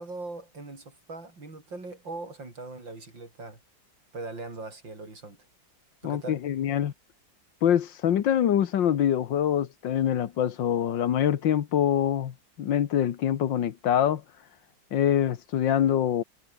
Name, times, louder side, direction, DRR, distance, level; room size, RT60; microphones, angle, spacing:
voice 1, 0.0-3.6 4.1-5.4 6.0-6.4, right 3 dB, 75° right, 6.7 m, -40 dB
voice 2, 6.0-6.9 7.6-14.2 14.9-16.2, left 10 dB, 75° left, 1.8 m, -25 dB
omnidirectional pair, 2.0 m